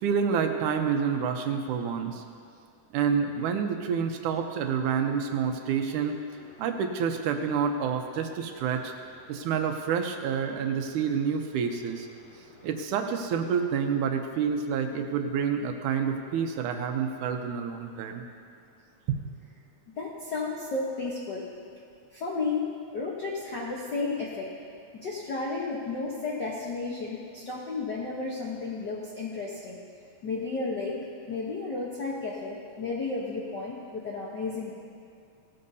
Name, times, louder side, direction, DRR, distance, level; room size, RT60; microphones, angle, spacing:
voice 1, 0.0-2.2 2.9-6.2 6.6-8.9 9.3-12.1 12.6-18.2 19.1-19.2, right 7 dB, 80° right, 5 dB, 2.3 m, -28 dB
voice 2, 5.4-5.7 6.4-6.7 8.7-8.8 9.3-9.5 12.1-12.7 20.0-21.5 22.1-24.5 24.9-29.8 30.2-34.7, left 3 dB, 65° left, -4 dB, 1.0 m, -33 dB
17.0 x 13.0 x 2.7 m, 2.5 s
omnidirectional pair, 3.5 m